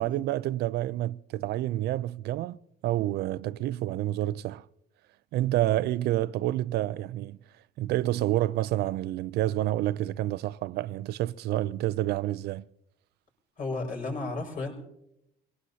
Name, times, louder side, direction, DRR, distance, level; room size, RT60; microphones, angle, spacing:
voice 1, 0.0-2.6 2.8-4.7 5.3-7.4 7.8-12.6, right 14 dB, 75° right, 0.5 m, -28 dB
voice 2, 13.6-14.7, left 3 dB, 55° left, 5.9 m, -33 dB
25.5 x 18.0 x 2.8 m
cardioid pair, 110°, 17 cm